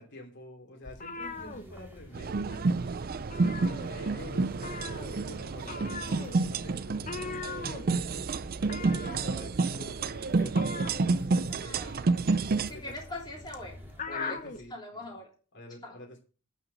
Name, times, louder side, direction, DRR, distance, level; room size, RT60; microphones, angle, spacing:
voice 1, 0.0-2.9 3.3-8.2 8.7-10.9 11.2-12.0 12.7-12.9 14.1-14.7 15.5-16.2, left 1 dB, 55° left, 1 dB, 2.9 m, -48 dB
sound 1, 0.8-2.3 2.6-2.8 3.1-4.2 4.6-14.7, left 4 dB, 35° left, 1.1 m, -41 dB
sound 2, 1.2-14.0, equal, 10° right, 2.7 m, -51 dB
sound 3, 2.1-12.7, right 3 dB, 45° right, 0.5 m, -29 dB
voice 2, 11.5-12.1 12.7-13.8 14.1-14.4 14.7-15.3 15.8-16.0, left 1 dB, 20° left, -2 dB, 3.2 m, -42 dB
9.3 x 5.7 x 8.1 m, 0.37 s
head